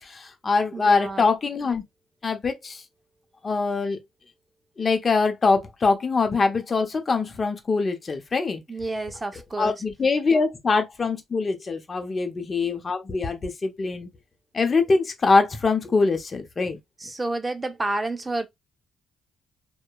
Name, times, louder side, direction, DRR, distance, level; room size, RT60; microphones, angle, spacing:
voice 1, 0.0-1.8 2.2-2.8 3.4-4.0 4.8-8.6 9.6-14.1 14.5-16.8, left 4 dB, 35° left, 0.8 m, -23 dB
voice 2, 0.7-1.3 8.7-9.8 17.0-18.5, right 2 dB, 20° right, 0.5 m, -30 dB
2.8 x 2.2 x 2.3 m
cardioid pair, 90°, 0 cm